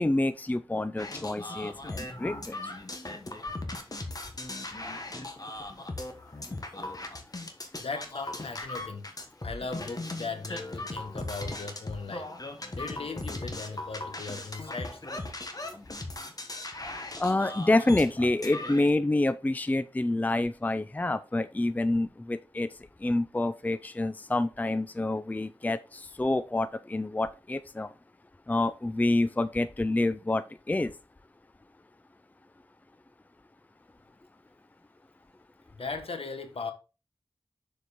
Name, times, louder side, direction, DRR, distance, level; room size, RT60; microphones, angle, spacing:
voice 1, 0.0-2.6 17.2-22.7 23.0-27.9 28.5-30.9, left 2 dB, 15° left, 0.4 m, -27 dB
sound 1, 1.0-18.9, left 2 dB, 40° left, 1.4 m, -38 dB
voice 2, 7.8-9.1 9.4-12.3 12.7-15.0 35.7-36.7, left 4 dB, 75° left, 1.2 m, -38 dB
7.0 x 4.7 x 4.1 m
wide cardioid pair, 65°, 10 cm